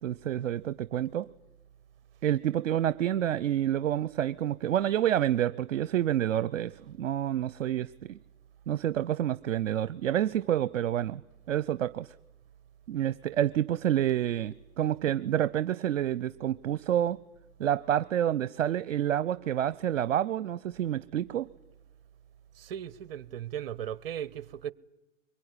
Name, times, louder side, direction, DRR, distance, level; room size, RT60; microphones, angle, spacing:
voice 1, 0.0-1.3 2.2-8.2 8.7-11.2 11.5-12.1 12.9-17.2 17.6-21.5, right 11 dB, 70° right, 0.8 m, -28 dB
voice 2, 22.6-24.7, right 10 dB, 45° right, 1.0 m, -37 dB
23.5 x 22.0 x 9.9 m
hypercardioid pair, 140°, 39 cm